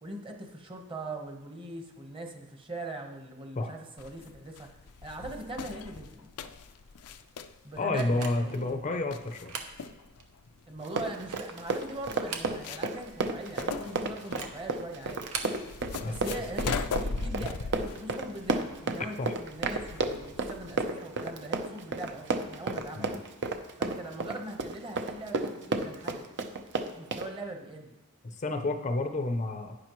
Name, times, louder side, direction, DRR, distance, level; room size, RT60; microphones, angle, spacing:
voice 1, 0.0-4.7 5.0-6.3 7.6-8.9 10.7-15.3 16.0-23.1 23.8-26.3 27.0-28.0, right 2 dB, 25° right, 3 dB, 1.1 m, -41 dB
sound 1, 4.0-20.8, left 4 dB, 80° left, 0.5 m, -40 dB
voice 2, 7.8-9.6 16.0-16.2 19.2-19.3 22.9-23.2 28.4-29.8, left 2 dB, 30° left, 7 dB, 0.6 m, -30 dB
sound 2, 8.0-8.6 9.3-9.8 10.2-10.3 11.0-11.6 12.1-12.9 13.2-13.3 14.2-14.6 15.1-15.6, right 5 dB, 75° right, 1.0 m, -40 dB
Run, 10.8-27.3, right 3 dB, 55° right, 0.7 m, -32 dB
10.0 x 9.7 x 3.1 m, 1.1 s
head